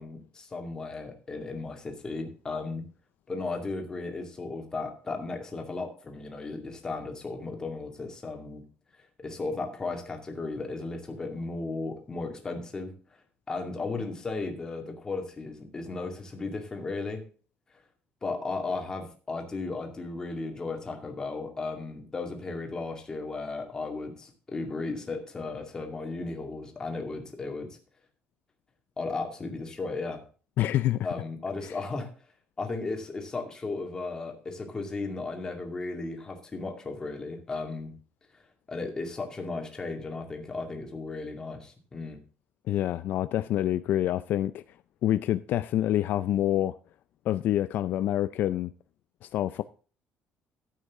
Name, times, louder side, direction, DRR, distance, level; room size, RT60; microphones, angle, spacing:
voice 1, 0.0-2.9 3.3-8.7 9.2-12.9 13.5-17.2 18.2-27.8 29.0-30.2 31.0-32.1 32.6-37.9 38.3-38.4 38.7-42.2, left 3 dB, 20° left, 2.2 m, -35 dB
voice 2, 30.6-31.1 31.6-31.8 42.7-44.6 45.0-46.7 47.3-48.7 49.2-49.6, left 12 dB, 55° left, 0.4 m, -27 dB
13.0 x 8.5 x 3.6 m
cardioid pair, 175°, 4 cm